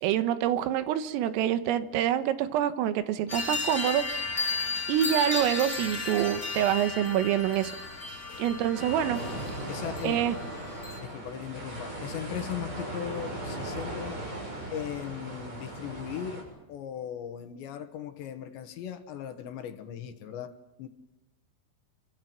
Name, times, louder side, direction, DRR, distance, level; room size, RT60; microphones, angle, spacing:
voice 1, 0.0-4.5 4.9-7.7 8.4-9.2 10.0-10.4, right 11 dB, 80° right, 3.9 m, -26 dB
sound 1, 3.3-11.0, left 3 dB, 55° left, 0.8 m, -34 dB
sound 2, 8.7-16.4, right 1 dB, 30° right, 8.4 m, -38 dB
voice 2, 9.7-10.2 11.0-14.2 14.7-20.9, left 10 dB, 70° left, 3.3 m, -38 dB
28.0 x 24.5 x 6.0 m
omnidirectional pair, 5.9 m